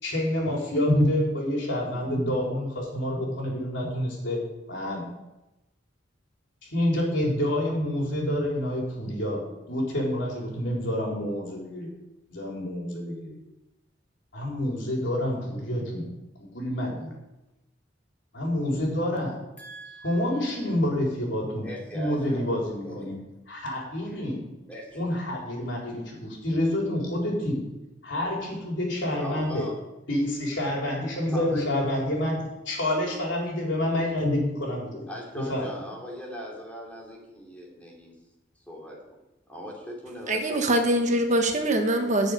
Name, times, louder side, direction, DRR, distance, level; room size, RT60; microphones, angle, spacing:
voice 1, 0.0-4.4 4.7-5.0 6.6-9.4 9.7-11.9 12.3-13.4 14.3-16.1 16.4-17.1 18.3-19.4 20.0-23.1 23.5-24.5 24.9-27.6 28.0-29.7 30.1-35.1 35.3-35.8, left 1 dB, 65° left, -2 dB, 4.1 m, -28 dB
voice 2, 19.6-20.5 21.6-22.4 22.8-23.0 24.1-24.2 24.7-25.0 29.2-29.7 31.3-31.6 35.1-38.1 38.7-39.2 39.5-40.7, equal, 10° left, -2 dB, 2.9 m, -40 dB
voice 3, 40.3-42.3, right 1 dB, 40° right, 4 dB, 1.3 m, -23 dB
11.5 x 6.5 x 8.3 m, 0.97 s
head